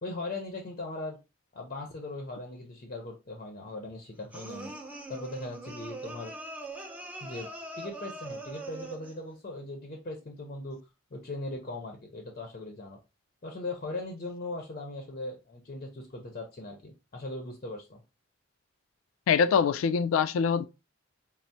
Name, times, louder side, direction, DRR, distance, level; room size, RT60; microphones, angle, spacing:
voice 1, 0.0-1.2 1.5-4.7 5.1-6.3 7.2-7.5 7.8-13.0 13.4-18.0, left 2 dB, 40° left, 0.6 m, -39 dB
sound 1, 4.3-9.2, right 2 dB, 10° right, 0.4 m, -42 dB
voice 2, 19.3-20.6, left 6 dB, 85° left, 0.3 m, -24 dB
4.3 x 2.0 x 2.6 m
head